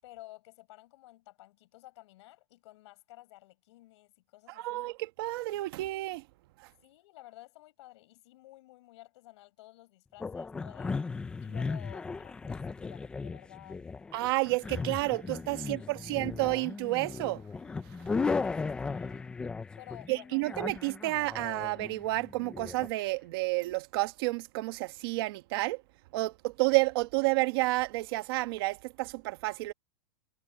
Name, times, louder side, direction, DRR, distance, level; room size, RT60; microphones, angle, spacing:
voice 1, 0.0-4.9 6.8-11.0 11.4-14.1 15.6-16.1 18.4-19.3 19.8-20.5, left 18 dB, 45° left, 8.0 m, -53 dB
voice 2, 4.6-6.2 6.6-6.7 14.1-17.4 20.1-25.8 26.1-29.7, right 21 dB, 35° right, 1.3 m, -30 dB
sound 1, 10.2-22.9, left 4 dB, 5° left, 0.5 m, -36 dB
supercardioid pair, 175°, 20 cm